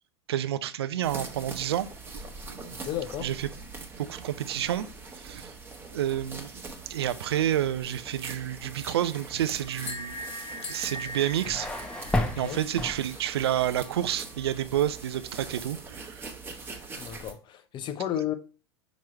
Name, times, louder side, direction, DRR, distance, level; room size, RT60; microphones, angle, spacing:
voice 1, 0.3-1.9 2.5-2.6 3.2-3.5 4.0-4.9 5.2-5.5 5.9-6.5 6.9-10.2 10.7-11.7 12.4-16.3, right 11 dB, 65° right, 0.5 m, -29 dB
sound 1, 1.0-17.3, right 4 dB, 15° right, 1.3 m, -43 dB
voice 2, 2.7-3.3 12.2-12.6 17.0-18.3, left 11 dB, 30° left, 0.7 m, -33 dB
sound 2, 9.6-14.6, left 1 dB, 50° left, 1.4 m, -42 dB
sound 3, 10.9-13.6, left 1 dB, 5° left, 0.9 m, -32 dB
6.0 x 3.1 x 5.6 m
figure-of-eight pair, 85°, 14 cm